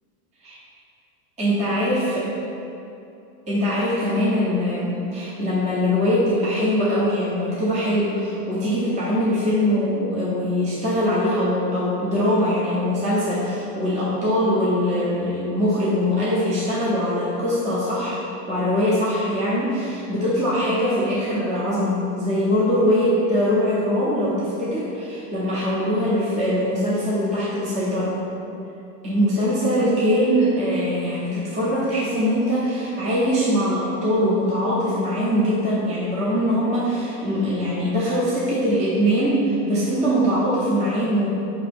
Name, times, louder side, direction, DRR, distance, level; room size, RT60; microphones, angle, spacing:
voice 1, 1.4-2.2 3.5-18.2 18.5-28.1 29.0-41.3, equal, 15° right, -8 dB, 0.7 m, -22 dB
4.3 x 2.9 x 3.4 m, 2.8 s
supercardioid pair, 115°, 47 cm